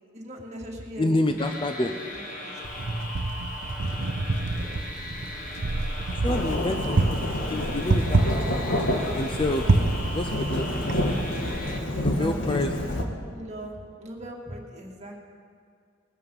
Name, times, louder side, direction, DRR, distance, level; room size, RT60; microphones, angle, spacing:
voice 1, 0.1-1.5 1.8-2.0 2.4-2.6 4.6-4.7 9.4-9.8 11.9-15.2, right 1 dB, 35° right, -2 dB, 2.1 m, -40 dB
voice 2, 1.0-2.0 6.1-8.6 9.1-9.8 10.1-11.2 12.0-13.0, left 1 dB, 25° left, 6 dB, 0.5 m, -29 dB
sound 1, 1.4-11.8, left 1 dB, 45° left, 1.5 m, -38 dB
Wind, 2.6-11.5, right 2 dB, 75° right, 0.7 m, -28 dB
Thunderstorm / Rain, 6.3-13.0, left 1 dB, 85° left, 1.6 m, -29 dB
21.0 x 8.3 x 5.4 m, 2.3 s
head